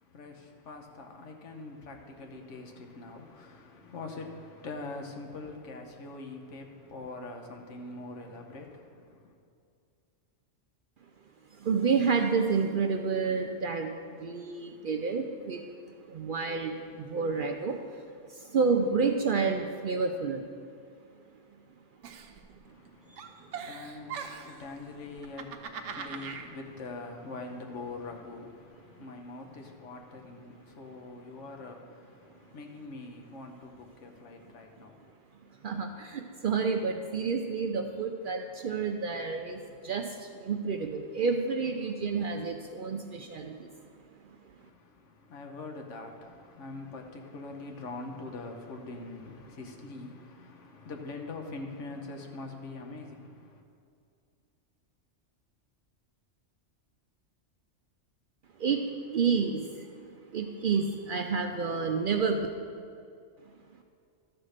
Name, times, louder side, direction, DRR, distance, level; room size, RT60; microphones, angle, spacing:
voice 1, 0.0-9.3 22.6-35.1 44.6-53.6, left 3 dB, 75° left, 1.3 m, -43 dB
voice 2, 11.5-15.6 16.1-18.0 18.3-20.5 23.1-23.5 35.6-43.7 58.6-58.8 59.1-59.9 60.3-62.5, right 5 dB, 60° right, 0.6 m, -29 dB
Giggle, 22.0-22.9 23.2-24.6 25.2-26.5, right 6 dB, 75° right, 1.0 m, -40 dB
12.5 x 4.3 x 6.5 m
omnidirectional pair, 1.3 m